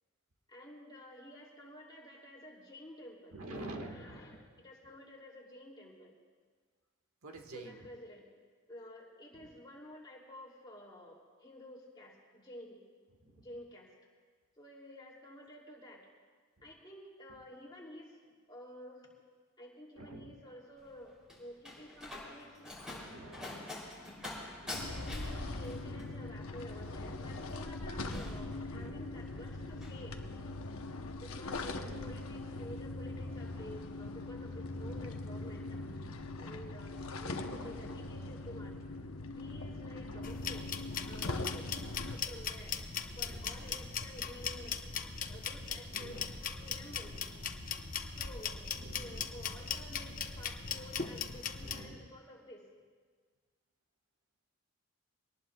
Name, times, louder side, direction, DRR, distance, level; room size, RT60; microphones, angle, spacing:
voice 1, 0.5-6.1 7.5-8.3 8.7-12.8 13.4-13.9 14.6-16.0 16.6-19.1 19.6-23.7 25.0-30.2 31.2-35.8 36.4-38.8 39.4-40.7 41.0-42.8 43.2-44.8 45.3-47.2 48.1-52.6, left 1 dB, 20° left, -3 dB, 2.8 m, -51 dB
voice 2, 3.3-4.4 7.2-7.9 9.3-9.5 13.2-13.5 19.9-20.3 23.0-23.6 24.6-25.0 25.9-26.1 28.7-29.1 31.7-32.2 33.1-33.2 34.8-35.1 37.4-37.9 40.1-40.5 43.1-43.5 45.9-46.3 48.8-49.3 51.6-52.1, right 2 dB, 80° right, 3 dB, 1.6 m, -49 dB
Slam, 20.8-29.2 29.5-30.0, left 2 dB, 5° right, 3.1 m, -46 dB
sound 1, 24.7-42.2, left 2 dB, 75° left, 0.9 m, -41 dB
sound 2, 40.2-51.8, left 6 dB, 40° left, 0.8 m, -39 dB
23.5 x 19.0 x 2.3 m, 1.5 s
head